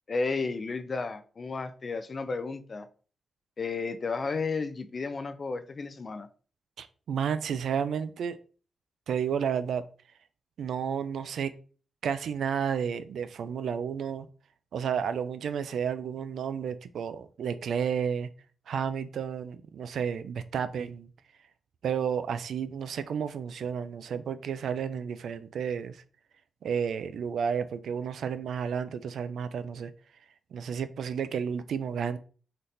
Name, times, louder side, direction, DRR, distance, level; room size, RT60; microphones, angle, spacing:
voice 1, 0.1-2.9 3.6-6.3, left 4 dB, 30° left, 0.4 m, -33 dB
voice 2, 6.8-8.4 9.1-9.8 10.6-11.5 12.0-14.3 14.7-18.3 18.7-21.1 21.8-26.0 26.6-29.9 30.5-32.2, right 7 dB, 75° right, 0.4 m, -31 dB
4.0 x 3.2 x 4.1 m
wide cardioid pair, 180°, 0 cm